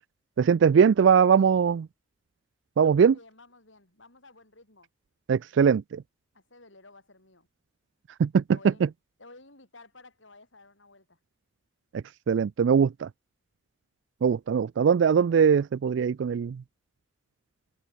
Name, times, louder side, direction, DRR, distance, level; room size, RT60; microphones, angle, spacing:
voice 1, 0.4-1.9 2.8-3.1 5.3-6.0 8.2-8.4 12.3-13.1 14.2-16.6, right 7 dB, 60° right, 0.3 m, -21 dB
voice 2, 2.8-4.9 6.3-7.5 8.4-8.9 9.2-11.2, left 2 dB, 65° left, 7.0 m, -53 dB
head